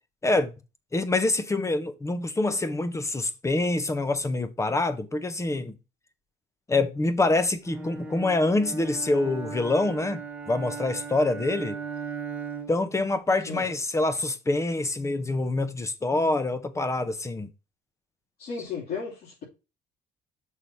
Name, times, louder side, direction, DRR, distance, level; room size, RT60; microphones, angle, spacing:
voice 1, 0.2-0.5 0.9-5.8 6.7-11.8 12.7-17.5, left 2 dB, 15° left, 1.0 m, -26 dB
Bowed string instrument, 7.7-12.9, right 5 dB, 10° right, 1.8 m, -37 dB
voice 2, 18.4-19.4, left 5 dB, 65° left, 3.3 m, -34 dB
6.5 x 3.6 x 5.7 m
cardioid pair, 110°, 17 cm